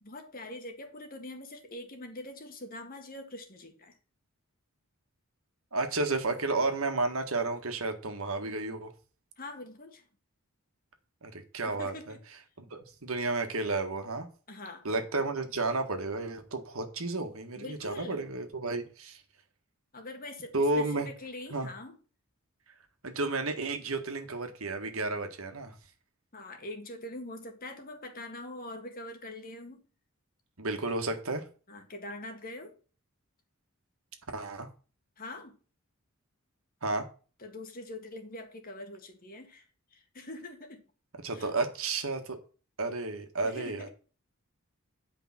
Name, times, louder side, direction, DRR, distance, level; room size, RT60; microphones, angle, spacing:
voice 1, 0.0-3.9 9.4-10.0 11.7-12.2 14.5-14.9 17.6-18.3 19.9-22.0 26.3-29.8 31.7-32.8 35.2-35.6 37.4-39.7 39.9-40.8 41.3-41.5 43.4-43.9, left 1 dB, 40° left, 1.9 m, -43 dB
voice 2, 5.7-8.9 11.2-12.1 12.6-14.3 14.8-19.2 20.5-21.1 21.5-21.7 23.0-25.7 30.6-31.4 34.3-34.7 36.8-37.1 41.2-42.4 42.8-43.9, right 3 dB, 75° right, 1.7 m, -32 dB
9.8 x 5.2 x 6.0 m
head